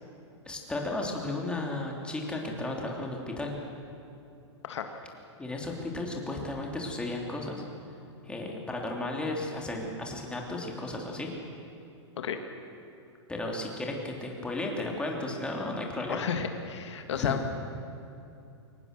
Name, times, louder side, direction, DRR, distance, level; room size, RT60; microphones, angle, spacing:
voice 1, 0.5-3.5 5.4-7.6 8.2-11.3 13.3-16.3 17.2-17.4, left 2 dB, 5° left, 0 dB, 3.0 m, -34 dB
voice 2, 16.1-17.5, left 7 dB, 75° left, 6 dB, 1.9 m, -32 dB
23.5 x 18.5 x 6.7 m, 2.6 s
hypercardioid pair, 135°, 15 cm